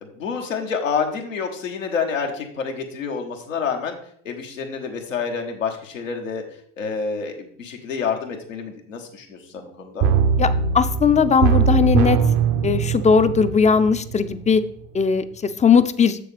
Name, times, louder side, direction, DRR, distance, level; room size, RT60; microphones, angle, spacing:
voice 1, 0.0-4.0 4.2-6.4 6.8-10.1, left 5 dB, 85° left, 2 dB, 1.2 m, -28 dB
sound 1, 10.0-14.7 15.0-15.1, right 6 dB, 55° right, 0.8 m, -21 dB
voice 2, 10.7-12.2 12.6-14.6 14.9-15.2 15.6-16.2, left 6 dB, 20° left, 12 dB, 0.5 m, -18 dB
7.2 x 6.7 x 3.3 m, 0.62 s
hypercardioid pair, 65°, 38 cm